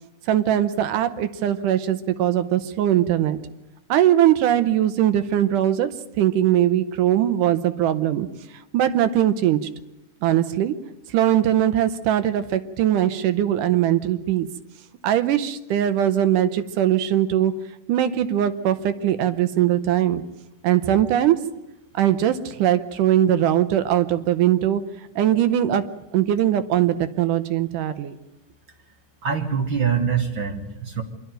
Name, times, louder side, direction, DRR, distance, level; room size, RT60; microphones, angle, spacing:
voice 1, 0.3-3.4 3.9-8.3 8.7-9.6 10.2-10.8 11.1-14.5 15.0-17.5 17.9-20.2 20.6-21.4 21.9-24.8 25.2-25.9 26.1-28.1, right 11 dB, 80° right, 12 dB, 2.4 m, -20 dB
voice 2, 29.2-31.0, right 7 dB, 50° right, 4 dB, 1.8 m, -24 dB
25.5 x 12.0 x 9.1 m, 0.92 s
omnidirectional pair, 3.6 m